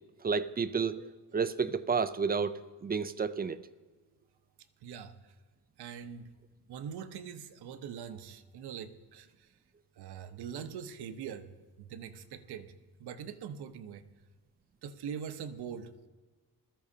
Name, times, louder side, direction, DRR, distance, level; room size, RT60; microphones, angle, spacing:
voice 1, 0.2-3.6, right 5 dB, 25° right, 13 dB, 0.5 m, -31 dB
voice 2, 4.8-5.3 5.8-6.3 6.7-9.5 10.0-12.7 13.0-14.0 14.8-16.1, right 7 dB, 85° right, 9 dB, 0.9 m, -43 dB
20.5 x 13.5 x 2.8 m, 1.3 s
cardioid pair, 110°, 38 cm